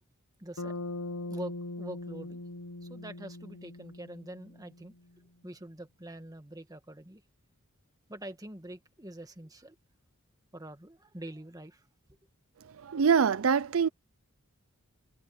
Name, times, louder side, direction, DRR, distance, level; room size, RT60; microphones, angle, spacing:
voice 1, 0.4-0.7 1.3-2.4 2.8-4.9 5.4-7.2 8.1-9.8 10.5-11.9, right 1 dB, 15° right, 1.7 m, -45 dB
Bass guitar, 0.6-4.9, left 2 dB, 80° left, 1.0 m, -41 dB
voice 2, 12.6-13.9, right 6 dB, 70° right, 0.5 m, -25 dB
head